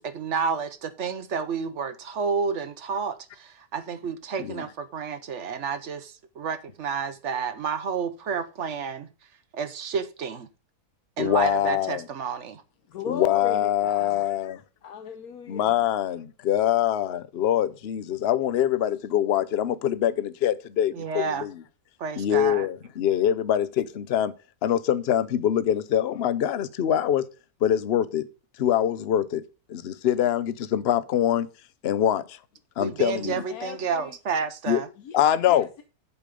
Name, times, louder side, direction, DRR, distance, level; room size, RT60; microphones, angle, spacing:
voice 1, 0.0-9.1 9.5-10.5 11.2-12.6 20.9-21.5 22.0-22.7 32.8-34.9, right 6 dB, 55° right, 1.1 m, -30 dB
voice 2, 11.2-12.0 13.1-14.6 15.5-21.5 22.2-24.3 24.6-27.2 27.6-28.2 28.6-29.4 29.7-31.5 31.8-32.4 32.8-33.4 34.7-34.8 35.1-35.7, left 10 dB, 50° left, 0.8 m, -24 dB
voice 3, 12.9-14.3 14.8-15.8 33.5-34.2 35.0-35.2 35.4-35.8, left 7 dB, 75° left, 1.4 m, -36 dB
11.0 x 5.1 x 5.1 m
omnidirectional pair, 1.6 m